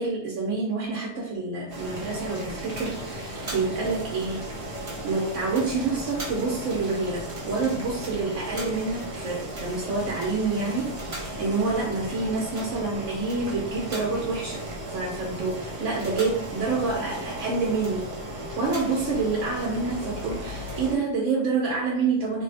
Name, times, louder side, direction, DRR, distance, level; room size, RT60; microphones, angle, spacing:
voice 1, 0.0-4.5 5.0-22.4, right 4 dB, 85° right, -3 dB, 1.0 m, -28 dB
Boiling, 1.7-20.9, right 1 dB, 60° right, 1.2 m, -35 dB
2.7 x 2.0 x 4.0 m, 0.72 s
omnidirectional pair, 1.3 m